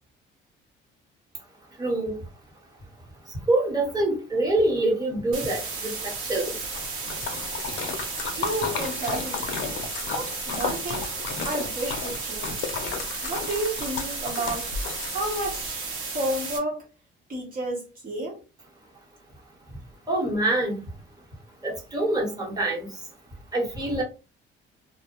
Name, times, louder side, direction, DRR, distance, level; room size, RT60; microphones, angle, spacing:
voice 1, 1.8-2.2 3.2-6.5 20.1-20.8 21.6-23.1 23.5-24.0, right 2 dB, 20° right, 1.0 m, -25 dB
sound 1, 5.3-16.6, right 4 dB, 85° right, 0.9 m, -34 dB
Splash splatter, 6.5-15.7, left 6 dB, 65° left, 0.5 m, -34 dB
voice 2, 8.4-9.4 10.1-11.1 11.4-12.7 13.2-14.7 15.1-16.8 17.3-18.4, right 1 dB, 40° right, 0.8 m, -31 dB
2.3 x 2.0 x 2.9 m
cardioid pair, 105°, 21 cm